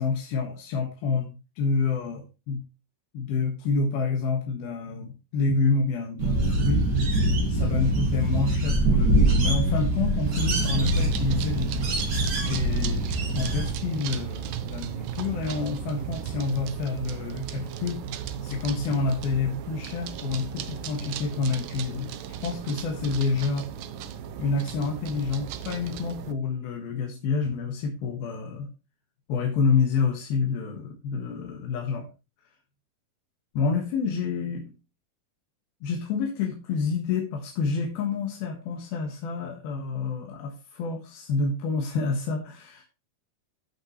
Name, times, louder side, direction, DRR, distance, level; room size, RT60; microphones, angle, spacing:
voice 1, 0.0-2.6 3.1-6.8 7.5-11.9 12.4-18.0 18.4-22.1 22.4-23.7 24.4-28.7 29.3-32.1 33.6-34.7 35.8-42.8, left 4 dB, 90° left, 1 dB, 3.4 m, -28 dB
sound 1, 6.2-13.7, right 1 dB, 40° right, 1.6 m, -24 dB
sound 2, 10.3-26.3, right 9 dB, 75° right, 2.1 m, -35 dB
15.0 x 5.7 x 3.1 m, 0.29 s
omnidirectional pair, 4.2 m